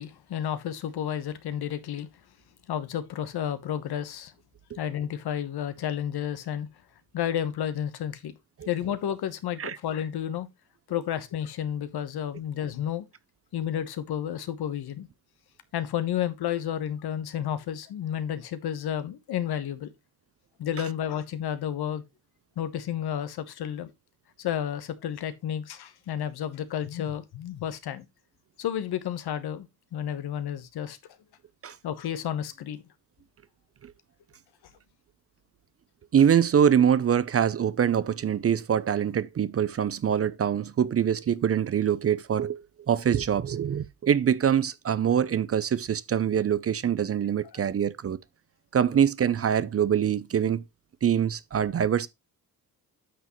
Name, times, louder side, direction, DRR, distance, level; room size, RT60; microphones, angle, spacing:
voice 1, 0.0-2.1 2.7-4.3 4.7-6.7 7.1-8.3 8.7-10.5 10.9-13.0 13.5-15.1 15.7-19.9 20.6-22.0 22.6-23.9 24.4-28.0 28.6-31.0 31.8-32.8 47.5-47.9, left 10 dB, 70° left, 1.2 m, -31 dB
voice 2, 36.1-42.6 42.9-48.2 48.7-50.6 51.0-52.1, right 8 dB, 35° right, 0.6 m, -24 dB
9.3 x 6.1 x 3.1 m
cardioid pair, 85°, 40 cm